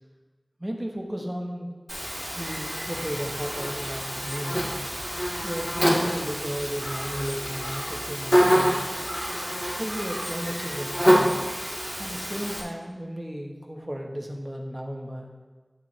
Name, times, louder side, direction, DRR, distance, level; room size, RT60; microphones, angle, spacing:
voice 1, 0.6-1.8 2.3-4.7 5.4-8.8 9.8-11.4 12.0-15.3, equal, 20° right, 1 dB, 1.5 m, -34 dB
Buzz, 1.9-12.6, equal, 10° left, 2.9 m, -27 dB
12.0 x 7.0 x 3.5 m, 1.4 s
wide cardioid pair, 45°, 0 cm